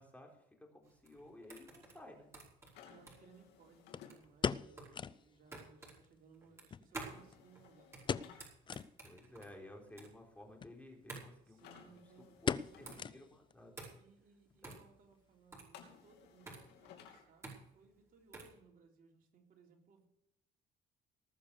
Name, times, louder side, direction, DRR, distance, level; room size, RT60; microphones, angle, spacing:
voice 1, 0.0-2.3 9.0-12.0 12.4-14.0 14.6-14.8, left 1 dB, 10° left, 1 dB, 3.9 m, -56 dB
sound 1, 0.8-18.6, right 3 dB, 15° right, 5.1 m, -53 dB
sound 2, 1.8-1.9 3.9-5.3 5.6-5.7 6.0-6.1 6.7-7.6 8.0-8.4 8.7-8.9 9.4-9.5 10.5-10.8 11.1-11.3 11.6-11.9 12.5-13.5 13.8-13.9 14.5-14.8 15.1-15.2, left 6 dB, 30° left, 0.5 m, -39 dB
sound 3, 2.7-4.2 7.1-8.4 11.6-13.0 15.7-17.2, left 8 dB, 85° left, 3.0 m, -58 dB
voice 2, 2.9-8.3 11.5-13.3 14.0-20.1, right 5 dB, 55° right, 1 dB, 3.6 m, -64 dB
19.0 x 6.8 x 6.9 m, 0.79 s
cardioid pair, 110°, 17 cm